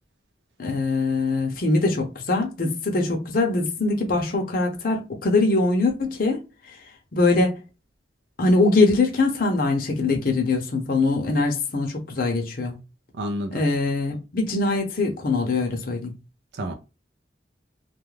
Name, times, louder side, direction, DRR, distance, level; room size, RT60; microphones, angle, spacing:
voice 1, 0.6-6.4 7.1-7.6 8.4-12.8 13.5-16.1, left 3 dB, 55° left, 0.6 m, -22 dB
voice 2, 13.1-13.6 16.5-16.7, equal, 75° right, 0.4 m, -29 dB
2.3 x 2.1 x 3.1 m
head